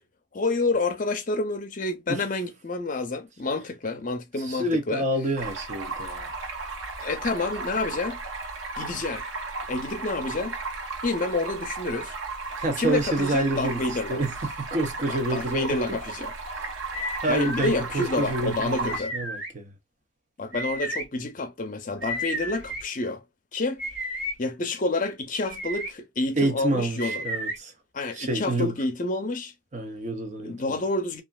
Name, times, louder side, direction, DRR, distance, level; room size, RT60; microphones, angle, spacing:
voice 1, 0.3-5.0 7.0-8.2 8.8-9.2 9.7-10.6 11.0-12.2 12.8-14.2 15.1-16.3 17.0-19.2 20.4-23.2 23.5-23.8 24.4-27.2 27.9-29.5 30.4-31.2, left 2 dB, 40° left, 0.5 m, -29 dB
voice 2, 4.4-6.3 12.6-16.0 16.5-19.7 26.3-27.7 28.1-28.8 29.7-30.8, right 1 dB, 35° right, 0.6 m, -28 dB
Stream, 5.4-19.0, right 3 dB, 85° right, 0.8 m, -35 dB
sound 1, 16.9-17.7 18.9-19.5 20.5-21.0 22.0-22.8 23.8-24.3 25.4-25.9 27.0-27.6, equal, 65° right, 1.6 m, -32 dB
3.0 x 2.4 x 2.3 m
head